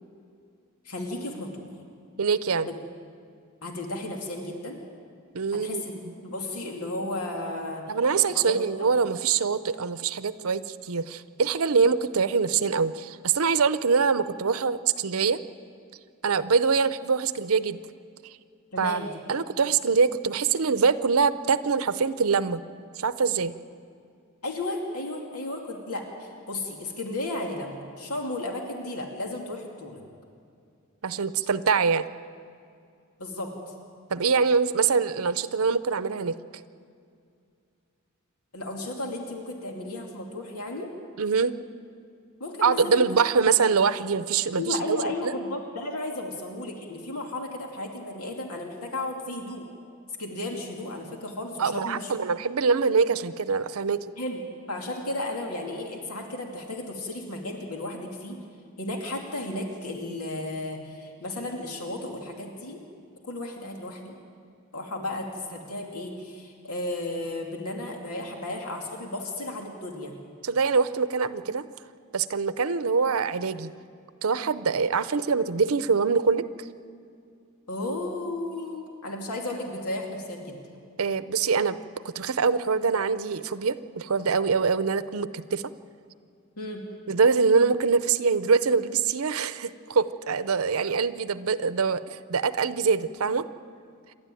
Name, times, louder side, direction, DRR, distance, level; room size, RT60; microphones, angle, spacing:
voice 1, 0.8-1.7 2.6-2.8 3.6-4.8 5.5-5.9 6.2-7.9 8.3-8.5 18.7-19.1 24.4-30.0 33.2-33.7 38.5-40.9 42.4-43.0 44.5-49.7 50.2-52.1 54.2-58.4 58.8-62.8 63.2-64.1 64.7-70.1 77.7-80.6 86.6-86.8, left 2 dB, 90° left, 1 dB, 2.6 m, -34 dB
voice 2, 2.2-2.7 5.3-5.8 7.9-15.4 16.2-17.8 18.8-19.0 19.3-22.6 23.0-23.5 31.0-32.1 34.1-36.4 41.2-41.6 42.6-45.4 51.6-54.0 70.4-71.7 72.1-73.7 74.2-76.7 81.0-81.8 82.0-85.6 87.1-93.5, right 5 dB, 75° right, 14 dB, 0.7 m, -24 dB
28.0 x 12.0 x 9.1 m, 2.4 s
head